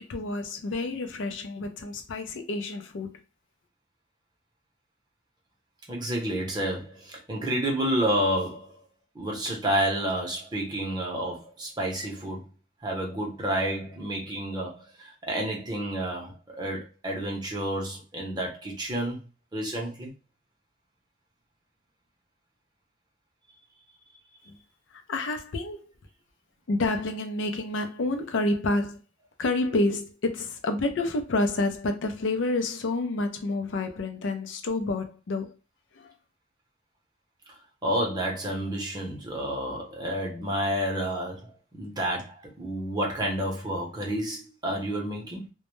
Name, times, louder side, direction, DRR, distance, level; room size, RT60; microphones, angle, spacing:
voice 1, 0.1-3.1 24.5-24.6 25.1-25.8 26.7-29.0 29.4-35.6 35.9-36.1, left 2 dB, 80° left, 0.4 m, -29 dB
voice 2, 5.9-8.8 9.1-12.5 12.8-19.2 19.5-20.1 37.5-41.5 41.8-45.5, right 1 dB, 20° right, 0.6 m, -30 dB
2.1 x 2.0 x 3.0 m
head